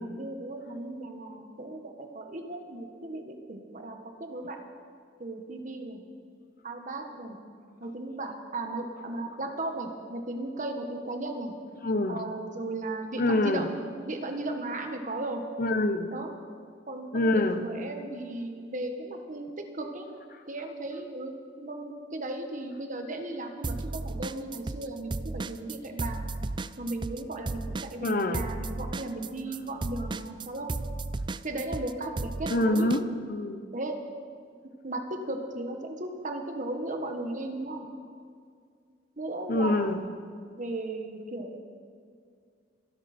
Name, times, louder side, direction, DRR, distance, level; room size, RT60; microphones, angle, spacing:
voice 1, 0.0-4.6 5.2-6.0 6.6-7.4 7.8-11.5 12.1-13.7 14.0-15.4 16.1-16.3 16.9-20.1 20.5-26.4 26.8-30.7 31.4-32.9 33.7-34.0 34.8-37.9 39.2-39.9 40.6-41.6, right 2 dB, 45° right, 4 dB, 1.6 m, -36 dB
voice 2, 11.8-12.2 13.2-13.7 15.6-16.1 17.1-17.6 28.0-28.4 32.5-33.6 39.5-40.0, left 2 dB, 55° left, 9 dB, 1.0 m, -26 dB
sound 1, 23.6-24.9 25.1-33.0, right 3 dB, 25° right, 0.4 m, -34 dB
26.5 x 11.5 x 4.5 m, 2.2 s
head